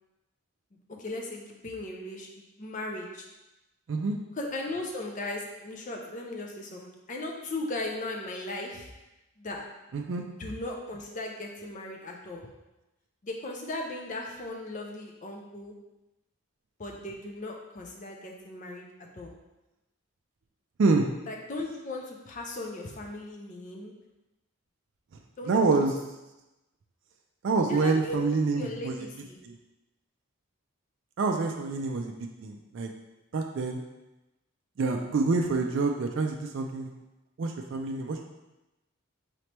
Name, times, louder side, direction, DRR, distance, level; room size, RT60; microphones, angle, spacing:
voice 1, 1.0-2.3 2.6-3.2 4.3-8.9 9.4-9.7 10.1-12.5 13.2-15.7 16.8-18.9 19.2-19.3 21.3-23.9 25.4-25.8 27.7-28.2 28.5-29.4, left 2 dB, 35° left, 1 dB, 0.5 m, -37 dB
voice 2, 9.9-10.2 20.8-21.1 25.5-25.9 27.4-29.0 29.4-29.5 31.2-32.1 32.4-32.9 33.3-33.8 34.8-36.9 37.4-38.2, right 3 dB, 55° right, 3 dB, 0.3 m, -26 dB
4.1 x 3.3 x 2.9 m, 0.99 s
head